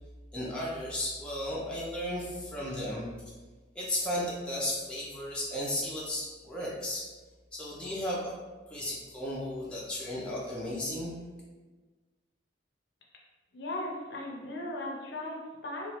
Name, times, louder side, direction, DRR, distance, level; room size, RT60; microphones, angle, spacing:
voice 1, 0.3-3.3 3.7-7.1 7.5-8.3 8.7-11.2, left 1 dB, 5° left, -6 dB, 0.4 m, -34 dB
voice 2, 13.5-15.9, left 1 dB, 60° left, -2 dB, 0.6 m, -37 dB
3.0 x 2.3 x 2.9 m, 1.3 s
head